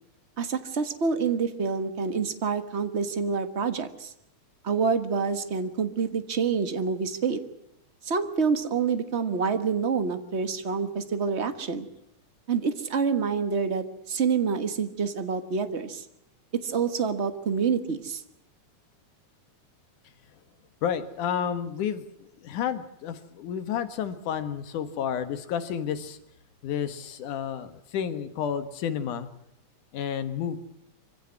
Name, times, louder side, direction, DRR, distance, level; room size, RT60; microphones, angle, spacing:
voice 1, 0.4-4.1 4.6-7.4 8.0-11.9 12.5-16.0 16.6-18.2, right 5 dB, 55° right, 10 dB, 0.7 m, -27 dB
voice 2, 20.8-26.2 26.6-29.3 29.9-30.6, left 8 dB, 80° left, 10 dB, 3.0 m, -31 dB
25.0 x 16.5 x 9.7 m, 0.79 s
omnidirectional pair, 3.5 m